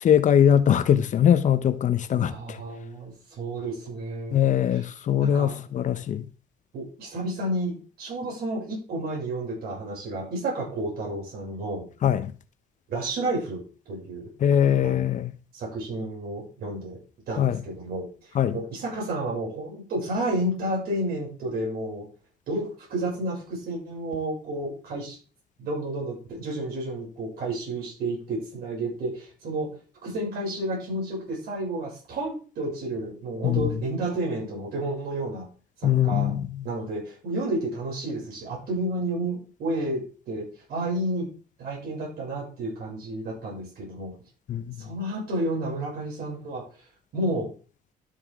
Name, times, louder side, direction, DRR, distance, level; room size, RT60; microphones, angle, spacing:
voice 1, 0.0-2.6 4.3-6.3 12.0-12.3 14.4-15.3 17.4-17.6 18.3-18.6 33.4-33.7 35.8-36.7 44.5-44.8, left 9 dB, 45° left, 0.8 m, -22 dB
voice 2, 2.1-4.4 5.2-5.6 6.7-11.8 12.9-13.6 13.9-14.3 14.8-15.1 15.5-17.0 17.3-18.1 18.5-22.0 22.5-25.2 25.6-29.7 30.0-35.5 35.8-36.3 36.6-41.3 41.6-44.1 44.8-46.6 47.1-47.5, right 1 dB, 65° right, 6.3 m, -31 dB
12.0 x 7.1 x 3.6 m
cardioid pair, 110°, 17 cm